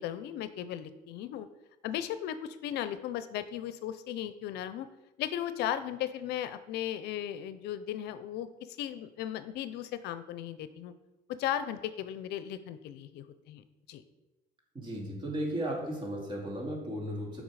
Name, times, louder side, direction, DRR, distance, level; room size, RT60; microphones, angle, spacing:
voice 1, 0.0-1.5 1.8-4.9 5.2-8.5 8.8-10.9 11.3-14.0, left 11 dB, 80° left, 12 dB, 0.5 m, -36 dB
voice 2, 14.7-17.4, right 1 dB, 30° right, -1 dB, 2.3 m, -35 dB
7.3 x 5.3 x 4.8 m, 1.0 s
cardioid pair, 110°, 17 cm